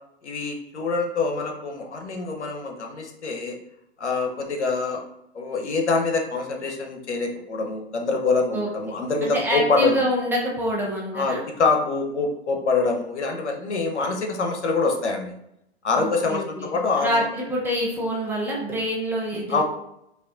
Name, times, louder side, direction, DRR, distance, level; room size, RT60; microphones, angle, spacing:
voice 1, 0.2-3.6 4.0-5.0 5.3-10.1 11.1-15.3 15.8-17.3 19.5-19.6, left 4 dB, 85° left, 3 dB, 0.8 m, -25 dB
voice 2, 9.2-11.4 16.0-19.6, equal, 5° right, -4 dB, 0.7 m, -26 dB
5.0 x 2.4 x 2.4 m, 0.80 s
hypercardioid pair, 125°, 33 cm